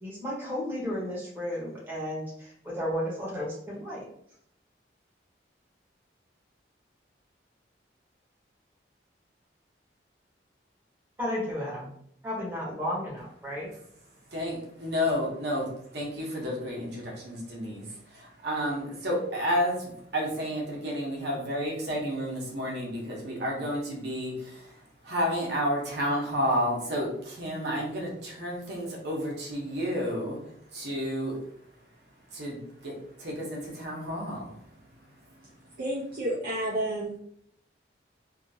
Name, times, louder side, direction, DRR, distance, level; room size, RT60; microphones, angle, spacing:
voice 1, 0.0-4.0 11.2-11.9 12.2-13.7, equal, 10° right, -6 dB, 0.9 m, -33 dB
voice 2, 14.3-31.4 32.3-34.6, equal, 65° right, -3 dB, 0.9 m, -31 dB
voice 3, 35.8-37.2, right 1 dB, 50° right, -6 dB, 0.5 m, -30 dB
2.7 x 2.5 x 2.6 m, 0.69 s
head